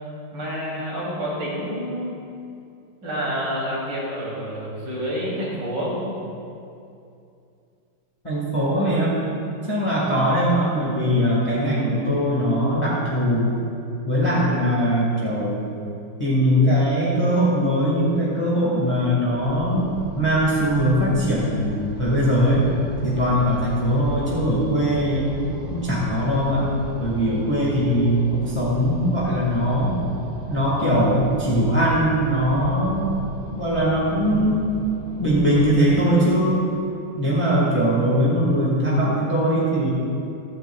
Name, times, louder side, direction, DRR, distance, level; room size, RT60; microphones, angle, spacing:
voice 1, 0.3-2.1 3.0-6.1, equal, 65° right, -6 dB, 3.7 m, -28 dB
voice 2, 8.2-9.2 9.7-13.5 14.0-15.7 16.2-22.7 23.0-25.4 25.7-26.7 27.0-30.0 30.5-33.2 33.6-34.6 35.2-36.7 37.1-39.9, equal, 15° left, -6 dB, 1.6 m, -21 dB
sound 1, 19.4-36.1, right 1 dB, 30° right, 0.9 m, -36 dB
15.0 x 13.5 x 2.3 m, 2.6 s
omnidirectional pair, 2.0 m